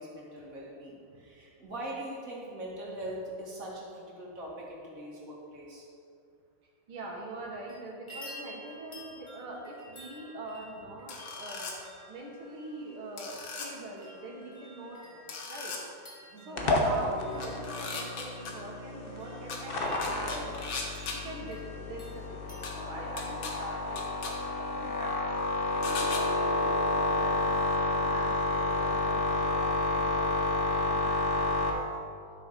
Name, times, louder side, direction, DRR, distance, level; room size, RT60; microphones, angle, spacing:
voice 1, 0.0-5.9 16.3-16.6, right 1 dB, 40° right, -4 dB, 2.4 m, -42 dB
voice 2, 6.9-15.7 16.5-19.7 20.0-20.7 21.1-24.0 24.4-25.3 25.7-31.8, right 2 dB, 85° right, -2 dB, 2.5 m, -43 dB
sound 1, 7.4-7.8 8.1-22.6, equal, 15° left, 1.4 m, -51 dB
sound 2, 11.1-11.7 13.2-13.7 15.3-15.8 17.4-18.5 19.5-19.6 20.0-21.2 22.6-22.7 23.2-23.5 24.0-24.3 25.8-26.2, left 4 dB, 70° left, 1.9 m, -38 dB
sound 3, 16.6-31.7, left 2 dB, 40° left, 0.9 m, -30 dB
12.0 x 6.5 x 4.8 m, 2.4 s
omnidirectional pair, 2.2 m